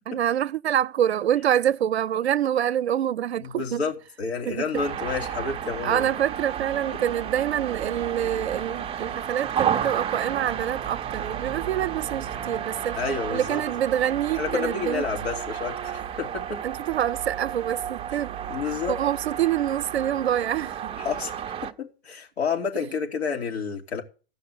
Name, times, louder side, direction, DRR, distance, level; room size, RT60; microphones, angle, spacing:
voice 1, 0.1-3.8 4.5-4.8 5.8-13.0 13.3-15.0 16.6-18.3 18.9-20.9, right 10 dB, 75° right, 0.5 m, -26 dB
voice 2, 3.4-6.1 12.9-13.6 14.3-16.6 18.5-19.0 21.0-21.3 21.6-24.0, left 5 dB, 75° left, 3.3 m, -30 dB
sound 1, 4.7-21.7, right 9 dB, 15° right, 0.7 m, -32 dB
15.5 x 5.7 x 8.6 m
figure-of-eight pair, 110°, 32 cm